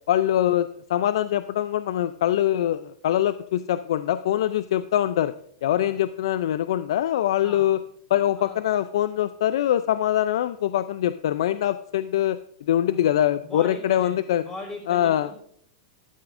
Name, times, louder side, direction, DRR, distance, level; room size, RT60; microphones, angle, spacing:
voice 1, 0.1-5.3 5.6-7.8 8.1-12.4 12.7-14.4 14.9-15.3, left 11 dB, 70° left, 13 dB, 0.4 m, -23 dB
voice 2, 7.4-7.7 8.4-8.6 12.9-13.0 13.4-15.3, left 2 dB, 15° left, 0 dB, 5.4 m, -40 dB
14.0 x 12.0 x 2.6 m, 0.65 s
hypercardioid pair, 120°, 3 cm